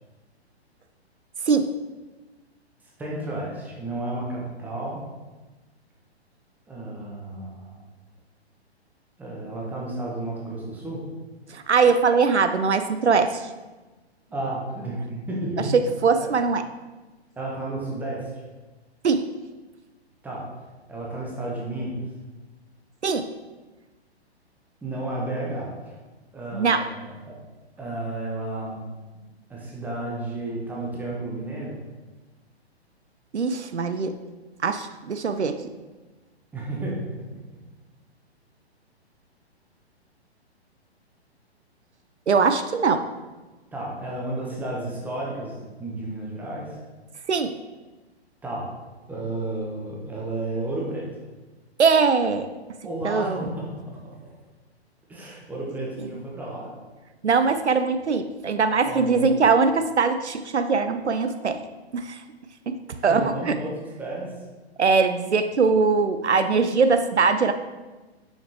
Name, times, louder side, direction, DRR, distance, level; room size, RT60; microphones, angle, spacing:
voice 1, 3.0-5.0 6.7-7.8 9.2-11.0 14.3-15.7 16.2-16.3 17.4-18.3 20.2-20.5 20.9-22.0 24.8-26.0 26.3-27.3 27.8-28.9 29.5-31.8 36.5-37.0 43.7-46.8 48.4-48.7 49.1-51.1 52.8-53.8 55.1-56.7 58.8-59.2 63.1-64.3, right 2 dB, 5° right, -4 dB, 0.9 m, -32 dB
voice 2, 11.5-13.5 16.0-16.6 19.0-19.3 23.0-23.3 26.5-26.9 33.3-34.2 34.6-35.6 42.3-43.0 47.3-47.5 51.8-52.5 53.0-53.4 57.2-61.6 61.9-62.2 62.7-62.8 63.0-63.6 64.8-67.5, right 5 dB, 85° right, 9 dB, 0.5 m, -21 dB
6.6 x 5.7 x 2.9 m, 1.2 s
figure-of-eight pair, 120°, 33 cm